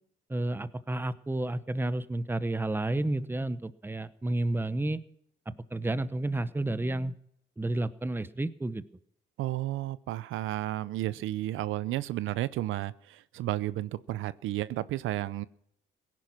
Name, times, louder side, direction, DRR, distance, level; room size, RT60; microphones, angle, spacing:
voice 1, 0.3-5.0 5.5-7.1 7.6-8.8, right 2 dB, 10° right, 15 dB, 0.9 m, -31 dB
voice 2, 9.4-15.4, right 15 dB, 85° right, 18 dB, 0.6 m, -32 dB
17.0 x 11.0 x 5.9 m, 0.70 s
cardioid pair, 90°, 20 cm